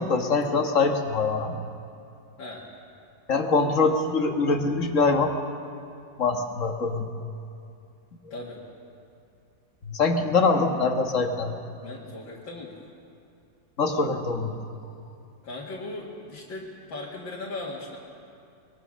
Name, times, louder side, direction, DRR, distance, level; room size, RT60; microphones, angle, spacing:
voice 1, 0.0-1.6 3.3-5.3 6.2-7.1 9.9-11.5 13.8-14.6, left 4 dB, 45° left, 4 dB, 1.7 m, -23 dB
voice 2, 8.3-8.6 11.8-12.8 15.4-18.0, left 2 dB, 85° left, -5 dB, 2.8 m, -38 dB
23.5 x 22.0 x 6.5 m, 2.5 s
omnidirectional pair, 2.0 m